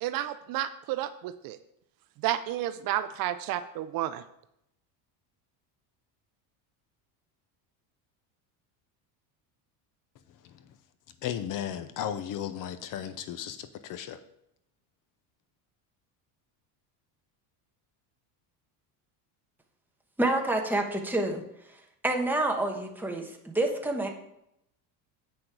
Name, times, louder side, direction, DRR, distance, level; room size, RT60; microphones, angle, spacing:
voice 1, 0.0-1.6 2.2-4.2, right 13 dB, 55° right, 0.5 m, -31 dB
voice 2, 11.2-14.2, left 10 dB, 45° left, 0.6 m, -35 dB
voice 3, 20.2-21.4 22.0-24.1, right 2 dB, 5° right, 1.1 m, -28 dB
8.1 x 6.3 x 4.7 m
cardioid pair, 140°, 43 cm